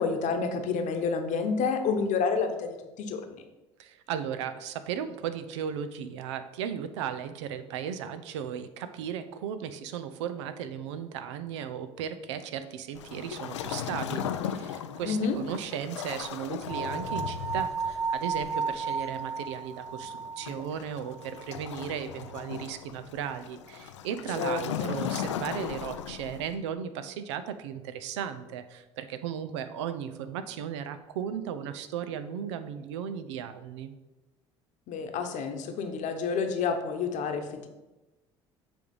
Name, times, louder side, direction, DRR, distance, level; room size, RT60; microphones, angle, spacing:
voice 1, 0.0-3.4 15.0-15.4 24.4-25.0 34.9-37.7, left 5 dB, 55° left, 5 dB, 1.0 m, -29 dB
voice 2, 3.8-33.9, right 8 dB, 80° right, 11 dB, 0.6 m, -36 dB
Waves surf, 12.9-26.6, left 9 dB, 85° left, 0.4 m, -38 dB
sound 1, 16.7-21.8, right 5 dB, 5° right, 0.9 m, -34 dB
7.5 x 3.5 x 5.4 m, 1.1 s
hypercardioid pair, 65°, 15 cm